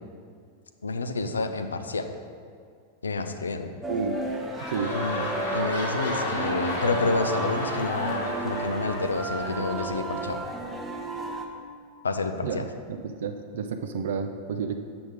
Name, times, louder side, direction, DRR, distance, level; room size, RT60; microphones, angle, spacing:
voice 1, 0.8-2.1 3.0-3.7 4.9-5.3 5.5-10.4 12.0-12.6, left 3 dB, 75° left, 7 dB, 0.5 m, -29 dB
sound 1, 3.8-11.5, right 2 dB, 10° right, 0.8 m, -33 dB
sound 2, 4.1-10.5 11.2-11.3, left 1 dB, 55° left, 2.0 m, -33 dB
voice 2, 4.6-5.0 12.4-14.8, right 6 dB, 60° right, 6 dB, 0.4 m, -31 dB
7.8 x 6.1 x 4.9 m, 2.2 s
figure-of-eight pair, 90°, 0 cm